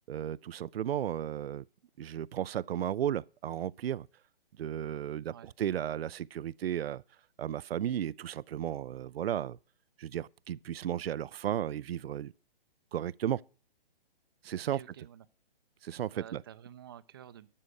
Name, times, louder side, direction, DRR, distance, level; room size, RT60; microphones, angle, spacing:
voice 1, 0.1-1.6 2.0-4.1 4.6-7.0 7.4-9.6 10.0-12.3 12.9-13.4 14.4-14.8 15.8-16.4, right 10 dB, 80° right, 0.5 m, -34 dB
voice 2, 14.6-15.3 16.1-17.5, right 10 dB, 25° right, 0.5 m, -50 dB
13.0 x 5.1 x 8.1 m
hypercardioid pair, 150°, 30 cm